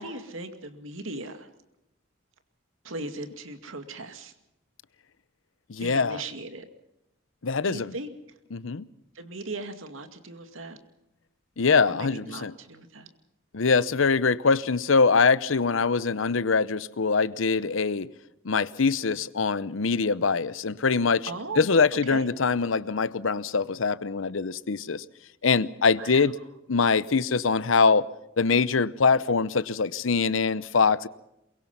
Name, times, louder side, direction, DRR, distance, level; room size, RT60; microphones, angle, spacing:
voice 1, 0.0-1.5 2.8-4.3 5.8-6.7 7.6-8.1 9.1-10.8 11.9-13.1 21.2-21.7 22.0-22.3 26.0-26.3, right 2 dB, 85° right, 2.3 m, -38 dB
voice 2, 5.7-6.2 7.4-7.9 8.5-8.9 11.6-12.5 13.5-18.1 18.4-21.3 21.6-25.0 25.4-26.4 26.7-28.1 28.4-31.1, left 4 dB, 80° left, 0.8 m, -23 dB
23.0 x 22.0 x 5.6 m
head